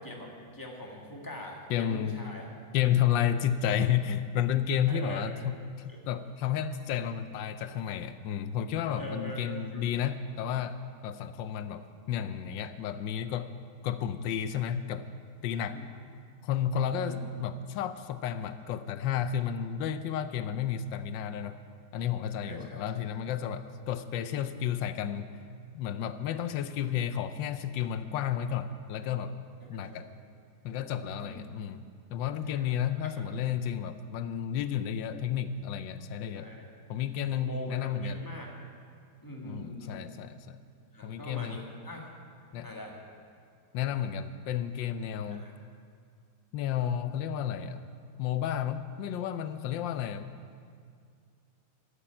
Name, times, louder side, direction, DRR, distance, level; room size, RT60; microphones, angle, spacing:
voice 1, 0.0-2.5 4.9-5.2 5.9-6.1 9.0-9.9 15.7-15.9 16.9-17.2 22.4-22.8 29.7-30.1 31.2-31.5 32.5-32.7 33.2-33.3 36.3-36.7 37.3-38.5 39.2-40.0 40.9-42.1 42.6-43.0 45.3-45.5, left 1 dB, 10° left, -1 dB, 1.4 m, -43 dB
voice 2, 1.7-2.3 2.7-13.5 13.8-15.0 15.4-15.8 16.4-21.6 21.9-25.3 25.7-29.3 29.7-30.1 30.6-31.8 32.1-36.5 36.9-38.2 39.4-40.6 41.0-41.6 42.5-42.7 43.7-45.5 46.5-47.8 48.2-50.4, left 9 dB, 90° left, 11 dB, 1.3 m, -32 dB
11.5 x 6.8 x 8.7 m, 2.2 s
omnidirectional pair, 2.0 m